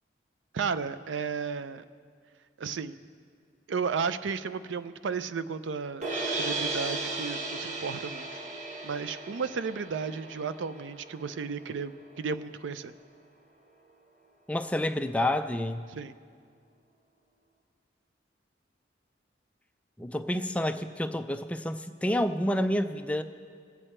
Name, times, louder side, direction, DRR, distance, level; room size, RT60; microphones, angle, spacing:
voice 1, 0.5-1.8 2.6-3.0 3.7-8.3 8.8-12.9 15.9-16.1, right 5 dB, 85° right, 13 dB, 0.5 m, -33 dB
sound 1, 6.0-12.2, right 3 dB, 40° right, 1.2 m, -36 dB
voice 2, 14.5-15.9 20.0-23.2, left 1 dB, 5° left, 8 dB, 0.4 m, -29 dB
21.5 x 8.3 x 4.4 m, 2.1 s
head